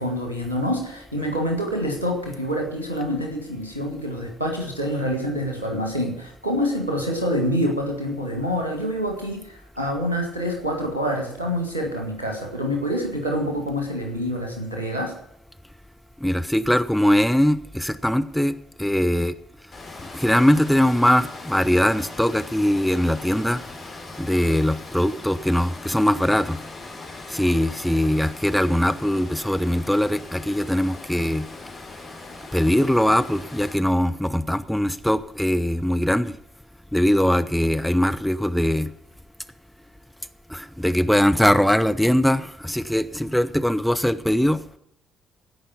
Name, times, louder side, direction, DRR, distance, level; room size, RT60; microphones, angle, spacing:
voice 1, 0.0-15.1, equal, 90° right, 2 dB, 1.9 m, -26 dB
voice 2, 16.2-19.3 20.1-23.6 24.2-26.6 27.3-31.4 32.5-36.3 36.9-38.9 40.5-44.6, equal, ahead, 9 dB, 0.7 m, -21 dB
Water, 19.7-33.8, left 3 dB, 45° left, 3.0 m, -40 dB
16.5 x 5.6 x 7.2 m, 0.74 s
figure-of-eight pair, 45°, 0 cm